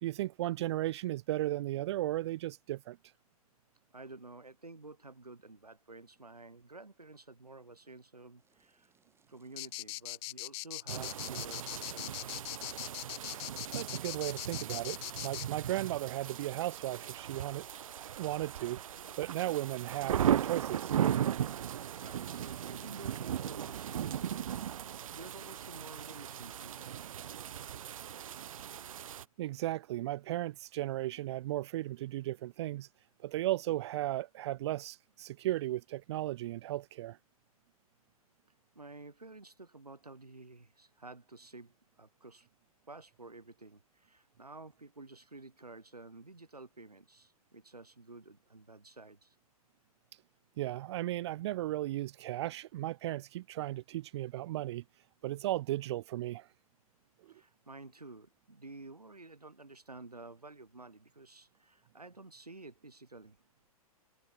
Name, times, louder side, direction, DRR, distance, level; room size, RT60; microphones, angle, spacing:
voice 1, 0.0-3.0 13.7-15.0 15.2-17.7 18.0-18.8 19.2-20.9 29.4-32.9 33.2-37.2 50.6-54.8 55.2-56.5 57.2-57.3, right 15 dB, 45° right, 0.6 m, -35 dB
voice 2, 3.9-8.9 9.3-12.6 22.0-24.5 24.8-27.0 38.7-42.5 42.9-49.4 57.3-63.4, right 3 dB, 90° right, 4.1 m, -51 dB
sound 1, 8.4-10.2 10.9-15.8 17.9-22.3, right 6 dB, 15° right, 6.5 m, -69 dB
sound 2, 9.6-15.5, left 26 dB, 30° left, 1.2 m, -41 dB
sound 3, 10.9-29.2, right 10 dB, 60° right, 1.1 m, -37 dB
figure-of-eight pair, 115°, 19 cm